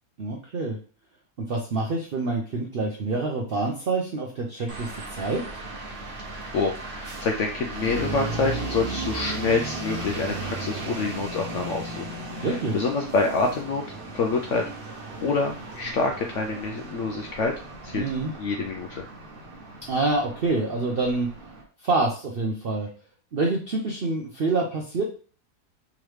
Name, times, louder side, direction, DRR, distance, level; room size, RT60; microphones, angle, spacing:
voice 1, 0.2-0.8 1.5-5.4 12.4-12.8 17.9-18.3 19.9-21.3 21.8-22.9 23.3-25.0, right 3 dB, 70° right, 0 dB, 0.5 m, -26 dB
sound 1, 4.7-21.6, right 2 dB, 45° right, 0.9 m, -36 dB
voice 2, 6.5-12.1 12.3-13.8 14.1-14.7 15.2-17.5 17.8-18.1 18.4-19.0, left 4 dB, 70° left, 2 dB, 0.7 m, -27 dB
3.6 x 3.1 x 3.1 m, 0.39 s
omnidirectional pair, 1.7 m